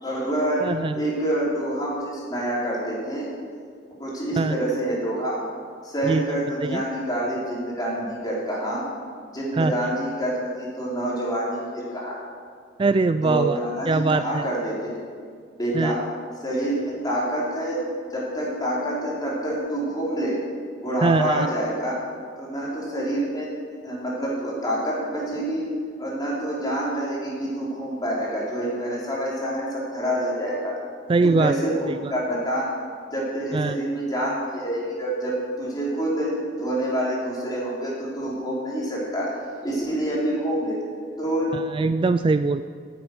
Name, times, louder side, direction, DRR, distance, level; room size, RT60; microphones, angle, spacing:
voice 1, 0.0-0.6 0.9-3.3 4.0-5.4 5.8-8.9 9.3-12.2 13.2-15.0 15.6-16.0 16.4-20.4 20.8-22.0 22.4-23.5 23.8-25.7 26.0-30.7 31.2-32.7 33.1-39.3 39.6-40.8 41.2-41.6, right 1 dB, 20° left, -5 dB, 4.2 m, -27 dB
voice 2, 0.6-1.0 4.4-4.6 6.1-6.2 6.6-6.8 9.5-9.7 12.8-13.6 13.9-14.4 15.7-16.0 21.0-21.5 31.1-31.5 31.9-32.1 33.5-33.8 41.5-42.6, right 3 dB, 30° right, 11 dB, 0.3 m, -22 dB
11.0 x 8.9 x 9.5 m, 2.1 s
head